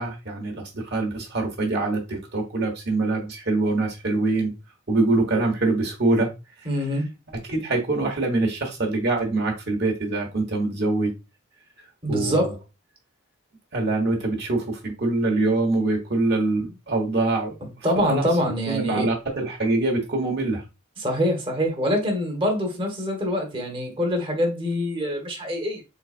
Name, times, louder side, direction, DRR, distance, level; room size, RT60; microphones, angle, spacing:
voice 1, 0.0-4.5 4.9-6.3 7.5-11.1 12.1-12.5 13.7-17.6 18.1-18.3 18.7-20.6, right 2 dB, 50° right, 1.2 m, -24 dB
voice 2, 6.6-7.1 12.0-12.6 17.8-19.1 21.0-25.8, equal, 25° right, 1.2 m, -25 dB
3.9 x 3.9 x 2.5 m
head